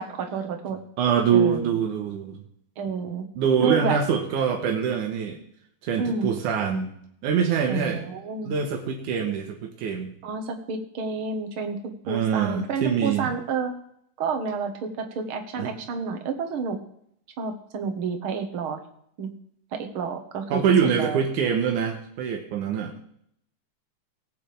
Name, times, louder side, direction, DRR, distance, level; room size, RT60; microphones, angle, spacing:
voice 1, 0.0-0.8 1.3-1.8 2.8-3.3 3.6-4.0 6.0-6.3 7.7-8.5 10.2-13.7 14.2-16.8 17.4-18.8 19.2-19.3 19.7-20.6 21.0-21.3, right 5 dB, 55° right, 6 dB, 1.8 m, -29 dB
voice 2, 1.0-2.4 3.4-5.4 5.8-6.9 7.2-8.0 8.4-10.1 12.1-13.3 15.6-15.7 20.5-23.0, right 7 dB, 85° right, 2 dB, 2.8 m, -24 dB
18.5 x 8.6 x 3.4 m, 0.70 s
omnidirectional pair, 3.4 m